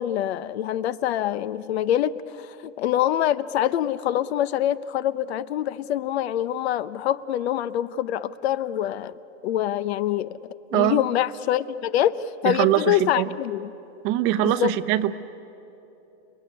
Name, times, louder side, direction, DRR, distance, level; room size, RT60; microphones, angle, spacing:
voice 1, 0.0-9.1 9.4-10.4 10.7-13.7 14.4-14.7, left 12 dB, 60° left, 15 dB, 0.9 m, -25 dB
voice 2, 10.7-11.0 12.4-13.3 14.0-15.2, right 14 dB, 35° right, 12 dB, 1.0 m, -22 dB
30.0 x 20.0 x 9.8 m, 3.0 s
hypercardioid pair, 130°, 37 cm